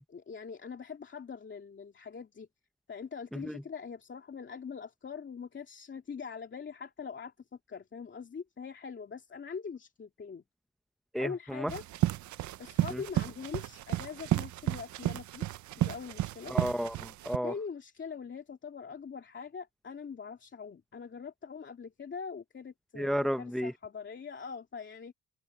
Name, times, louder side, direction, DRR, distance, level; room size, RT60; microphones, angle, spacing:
voice 1, 0.1-2.5 2.9-10.4 11.2-11.9 12.6-15.5 15.7-16.6 17.4-25.1, left 6 dB, 40° left, 2.8 m, -43 dB
voice 2, 11.1-11.7 12.9-13.0 16.5-17.5 23.0-23.7, equal, ahead, 0.8 m, -32 dB
sound 1, 11.7-17.4, right 14 dB, 70° right, 0.7 m, -32 dB
cardioid pair, 90°, 30 cm